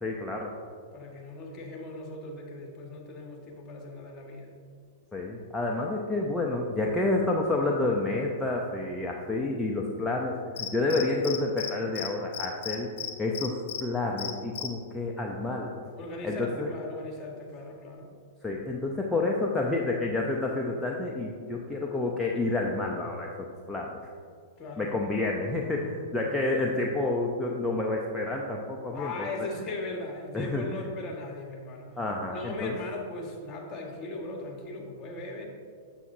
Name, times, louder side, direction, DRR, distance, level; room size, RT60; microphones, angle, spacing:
voice 1, 0.0-0.5 5.1-12.9 13.2-15.8 16.2-16.7 18.4-24.0 24.8-29.3 30.3-30.9 31.9-32.7, left 2 dB, 10° left, -2 dB, 0.7 m, -29 dB
voice 2, 0.9-4.5 16.0-18.1 24.6-25.0 28.9-32.0 32.3-35.5, left 2 dB, 30° left, 0 dB, 1.6 m, -38 dB
Cricket, 10.6-11.7 12.0-12.1 12.3-13.8 14.2-14.7, left 9 dB, 65° left, 0.7 m, -34 dB
8.2 x 7.4 x 2.7 m, 2.2 s
hypercardioid pair, 110°, 0 cm